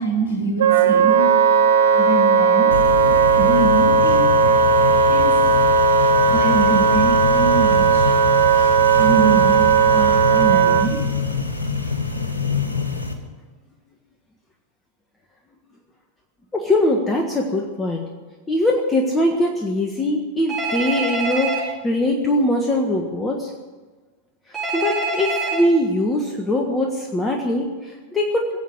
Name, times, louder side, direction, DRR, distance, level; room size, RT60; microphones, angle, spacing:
voice 1, 0.0-2.7 3.1-4.2 4.6-5.8 6.3-8.1 8.5-9.6 9.9-11.0, right 4 dB, 55° left, 1 dB, 4.7 m, -25 dB
Wind instrument woodwind instrument, 0.6-10.9, right 5 dB, 60° right, 1.3 m, -16 dB
sound 1, 2.7-13.1, left 4 dB, 80° left, 1.7 m, -25 dB
voice 2, 16.5-18.0 18.5-23.5 24.7-27.7 28.1-28.4, left 1 dB, 15° left, 1 dB, 1.5 m, -21 dB
Telephone, 20.5-21.6 24.5-25.6, right 2 dB, 10° right, 5.8 m, -25 dB
17.0 x 8.3 x 9.8 m, 1.3 s
figure-of-eight pair, 90°, 0 cm